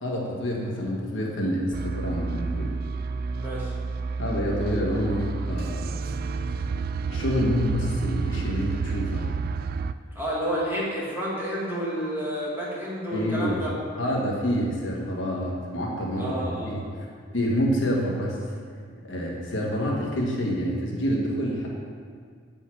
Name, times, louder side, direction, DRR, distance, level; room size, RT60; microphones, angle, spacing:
voice 1, 0.0-2.7 4.2-5.9 7.1-9.3 13.1-13.6 14.0-17.0 17.3-18.4 19.0-21.7, equal, 70° left, -2 dB, 1.6 m, -27 dB
sound 1, 1.7-9.9, right 4 dB, 50° right, 0.3 m, -30 dB
voice 2, 3.4-3.7 10.1-13.7 16.1-16.7, equal, 10° right, -7 dB, 2.4 m, -30 dB
8.4 x 5.5 x 6.3 m, 2.1 s
head